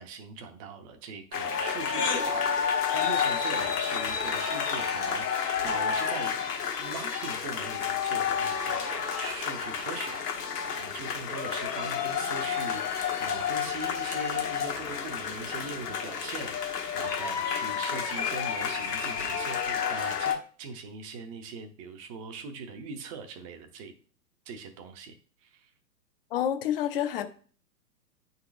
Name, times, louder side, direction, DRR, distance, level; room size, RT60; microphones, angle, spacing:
voice 1, 0.0-6.4 6.8-23.9 24.5-25.7, right 5 dB, 20° right, 0.6 m, -41 dB
sound 1, 1.3-20.3, left 7 dB, 65° left, 1.3 m, -30 dB
voice 2, 26.3-27.3, left 10 dB, 35° left, 0.6 m, -28 dB
9.5 x 4.0 x 2.5 m
figure-of-eight pair, 110°, 50 cm